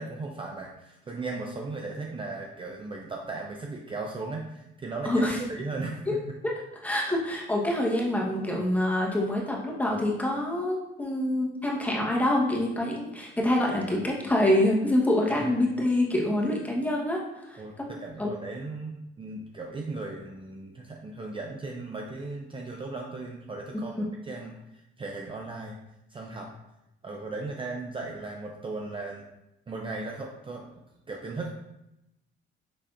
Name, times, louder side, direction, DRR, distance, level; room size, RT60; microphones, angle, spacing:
voice 1, 0.0-6.2 15.2-15.6 17.6-25.8 26.1-26.5 27.0-29.3 29.7-30.7 31.1-31.5, right 3 dB, 25° right, 0 dB, 0.5 m, -37 dB
voice 2, 5.0-5.4 6.1-6.2 6.4-6.5 6.8-17.6 18.2-18.3 23.7-23.8, left 1 dB, 5° left, -2 dB, 1.0 m, -26 dB
5.8 x 3.3 x 2.5 m, 0.89 s
cardioid pair, 105°, 21 cm